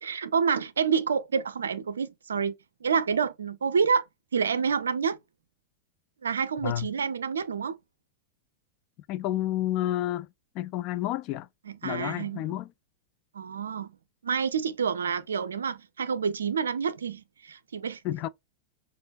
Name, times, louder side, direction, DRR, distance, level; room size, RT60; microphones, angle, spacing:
voice 1, 0.0-2.5 2.8-4.0 4.3-5.2 6.2-7.8 11.7-12.5 13.3-14.0 14.2-18.0, right 6 dB, 70° right, 0.4 m, -28 dB
voice 2, 9.1-10.3 10.5-11.5 11.8-12.7 18.0-18.3, left 13 dB, 40° left, 0.4 m, -30 dB
6.0 x 2.6 x 2.2 m
figure-of-eight pair, 90°, 0 cm